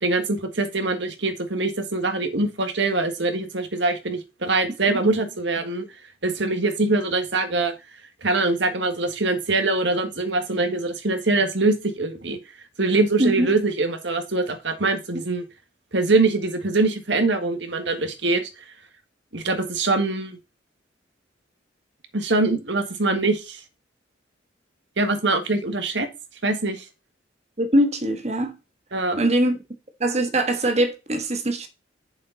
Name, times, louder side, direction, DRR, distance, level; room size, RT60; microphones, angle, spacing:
voice 1, 0.0-5.9 6.2-7.7 8.2-12.4 12.8-15.4 15.9-18.5 19.3-20.4 22.1-23.6 25.0-26.1 26.4-26.9 28.9-29.2, right 3 dB, 70° right, 1.8 m, -23 dB
voice 2, 13.2-13.5 27.6-28.6 29.2-29.6 30.0-31.7, right 1 dB, 35° right, 1.3 m, -22 dB
8.6 x 6.6 x 4.0 m
head